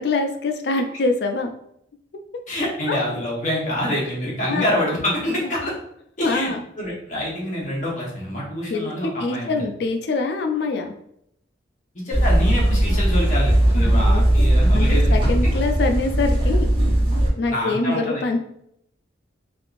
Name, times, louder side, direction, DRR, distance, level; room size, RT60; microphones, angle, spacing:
voice 1, 0.0-1.5 2.9-3.0 4.5-4.6 5.4-5.5 6.2-6.6 8.7-10.9 13.7-14.2 14.7-16.7 17.4-18.4, left 3 dB, 60° left, 5 dB, 0.4 m, -24 dB
voice 2, 2.5-5.7 6.2-6.5 6.8-9.6 12.0-15.3 17.5-18.2, left 1 dB, 40° left, -5 dB, 1.0 m, -26 dB
sound 1, 12.1-17.3, right 1 dB, 30° right, 0.9 m, -18 dB
3.5 x 2.4 x 2.4 m, 0.73 s
head